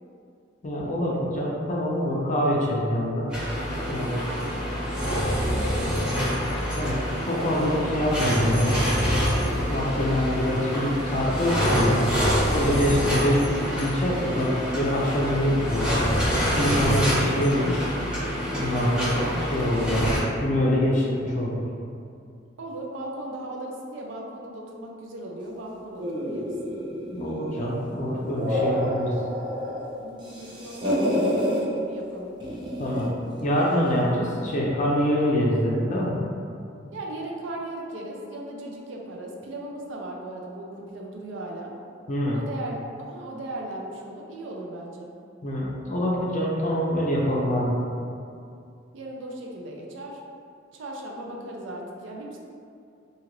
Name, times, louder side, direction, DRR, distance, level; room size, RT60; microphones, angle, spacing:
voice 1, 0.6-3.3 3.9-4.2 6.8-8.8 9.4-12.0 12.5-16.0 16.4-17.8 18.5-20.1 20.4-21.6 27.1-29.1 32.8-33.1 33.4-36.2 42.1-42.4 45.4-47.7, equal, 40° left, -4 dB, 0.5 m, -25 dB
sound 1, 3.3-20.2, equal, 5° right, 1.0 m, -26 dB
voice 2, 4.2-4.6 5.0-6.2 22.6-26.5 30.0-31.5 31.8-32.3 36.9-41.7 42.3-45.1 48.9-50.2 50.7-52.4, right 1 dB, 75° right, -1 dB, 0.4 m, -37 dB
sound 2, 26.0-27.8 28.2-29.9 30.2-31.6 32.4-33.2, equal, 25° right, 0.5 m, -28 dB
2.7 x 2.4 x 3.0 m, 2.4 s
head